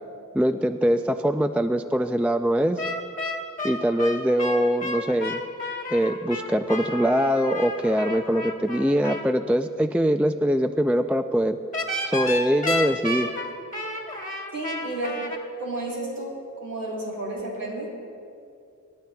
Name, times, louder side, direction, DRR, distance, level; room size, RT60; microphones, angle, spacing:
voice 1, 0.3-2.8 3.6-5.4 5.9-11.6 12.1-13.3, equal, 5° right, 8 dB, 0.3 m, -23 dB
sound 1, 2.8-9.3 11.7-15.4, left 2 dB, 25° left, 1.8 m, -31 dB
voice 2, 14.5-15.2 15.6-17.9, right 2 dB, 80° right, -4 dB, 3.4 m, -32 dB
27.5 x 12.0 x 2.3 m, 2.4 s
wide cardioid pair, 60°, 32 cm